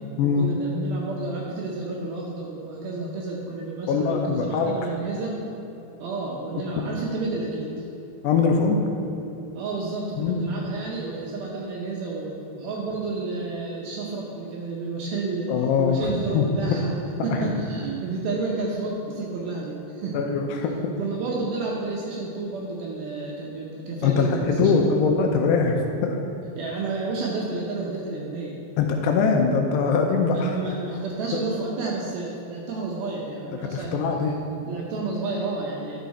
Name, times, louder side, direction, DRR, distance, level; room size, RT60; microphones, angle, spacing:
voice 1, 0.2-5.4 6.0-7.8 9.5-16.9 17.2-20.2 21.0-25.0 26.6-28.6 30.3-34.0 34.6-36.0, right 3 dB, 75° right, -2 dB, 2.3 m, -31 dB
voice 2, 3.9-4.7 8.2-8.8 10.2-10.6 15.5-16.5 17.3-17.5 20.1-20.7 24.0-26.2 28.8-30.7 33.7-34.3, left 5 dB, 80° left, 2 dB, 2.6 m, -22 dB
11.0 x 6.4 x 4.1 m, 2.9 s
omnidirectional pair, 5.1 m